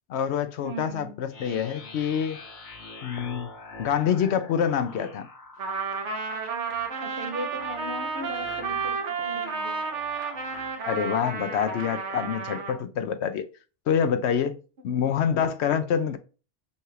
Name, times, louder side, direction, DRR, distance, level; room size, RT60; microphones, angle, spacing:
voice 1, 0.1-2.4 3.0-3.5 3.8-5.3 10.8-13.4 13.9-14.6 14.8-16.2, left 8 dB, 70° left, 0.8 m, -26 dB
voice 2, 0.6-1.2 7.0-9.8, right 1 dB, 60° right, 0.9 m, -38 dB
sound 1, 1.3-10.8, left 3 dB, 90° left, 1.7 m, -45 dB
Trumpet, 5.6-12.8, right 5 dB, 80° right, 1.2 m, -32 dB
5.4 x 2.4 x 3.1 m
omnidirectional pair, 1.2 m